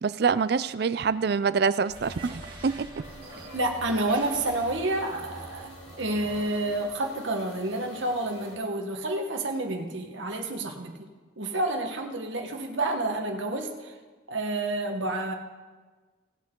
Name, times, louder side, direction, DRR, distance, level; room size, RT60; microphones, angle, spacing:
voice 1, 0.0-2.9, right 5 dB, 55° right, 15 dB, 0.4 m, -26 dB
sound 1, 1.8-6.9, right 1 dB, 25° right, 2.6 m, -45 dB
sound 2, 3.0-8.6, equal, 75° left, 2.5 m, -48 dB
voice 2, 3.3-5.7 6.0-11.1 11.4-13.9 14.3-15.3, right 2 dB, 75° right, 3 dB, 1.2 m, -29 dB
18.0 x 8.0 x 3.8 m, 1.4 s
head